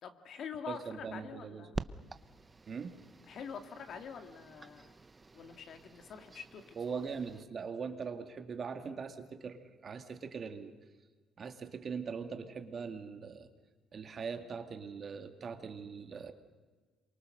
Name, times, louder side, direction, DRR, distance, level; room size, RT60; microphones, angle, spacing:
voice 1, 0.0-1.8 3.3-4.9 5.3-7.0, left 7 dB, 60° left, 7 dB, 2.2 m, -46 dB
voice 2, 0.7-1.7 2.7-3.0 6.8-10.7 11.4-13.5 13.9-16.3, right 5 dB, 40° right, 6 dB, 2.1 m, -41 dB
sound 1, 1.7-7.4, right 3 dB, 20° right, 0.8 m, -47 dB
27.0 x 24.0 x 6.6 m, 1.4 s
cardioid pair, 115°, 0 cm